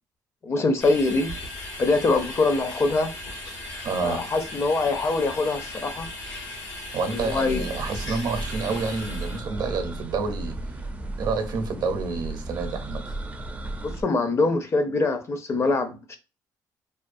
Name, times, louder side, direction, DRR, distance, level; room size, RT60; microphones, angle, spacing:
voice 1, 0.4-1.3 1.8-3.1 4.0-6.1 7.1-7.7 13.8-16.2, left 3 dB, 35° left, 0.5 m, -24 dB
sound 1, 0.8-9.4, left 2 dB, 85° left, 1.0 m, -37 dB
voice 2, 3.8-4.2 6.9-10.5 11.2-13.1, right 4 dB, 60° right, 0.6 m, -29 dB
sound 2, 7.2-14.0, right 2 dB, 20° right, 0.4 m, -34 dB
2.4 x 2.3 x 2.5 m
cardioid pair, 110°, 8 cm